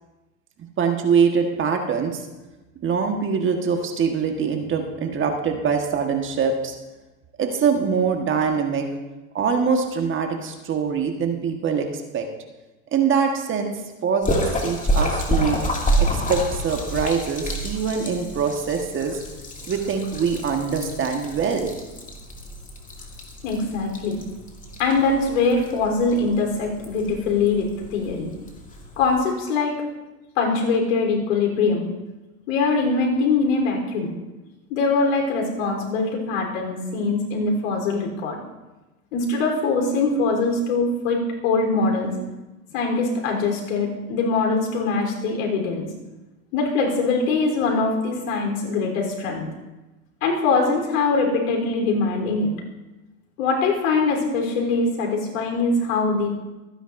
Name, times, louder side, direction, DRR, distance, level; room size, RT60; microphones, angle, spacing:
voice 1, 0.8-2.2 2.8-6.8 7.4-8.9 9.3-11.9 12.1-12.3 12.9-15.6 16.0-19.2 19.7-21.7, right 6 dB, 30° right, 4 dB, 1.5 m, -23 dB
Splash splatter, 14.2-29.2, equal, 20° left, 2.4 m, -29 dB
voice 2, 23.4-24.2 24.8-28.3 29.0-29.7 30.4-31.9 32.5-34.1 34.7-38.4 39.1-42.1 42.7-45.9 46.5-49.5 50.2-52.5 53.4-56.3, left 3 dB, 70° left, 1 dB, 3.8 m, -22 dB
25.5 x 10.0 x 2.6 m, 1.1 s
hypercardioid pair, 105°, 42 cm